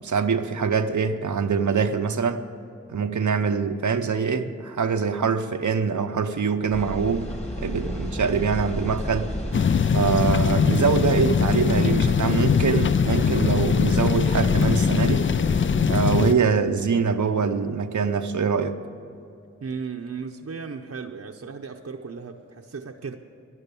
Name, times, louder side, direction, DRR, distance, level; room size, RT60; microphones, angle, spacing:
voice 1, 0.0-2.4 2.9-7.3 7.5-9.3 9.9-15.2 15.9-18.8, right 5 dB, 90° right, 7 dB, 0.8 m, -24 dB
sound 1, 6.7-15.8, equal, 20° left, 1.7 m, -32 dB
sound 2, 9.5-16.3, left 6 dB, 45° left, 0.4 m, -21 dB
voice 2, 19.6-23.1, right 5 dB, 60° right, 2 dB, 0.7 m, -35 dB
12.5 x 11.5 x 8.3 m, 2.6 s
wide cardioid pair, 65°, 29 cm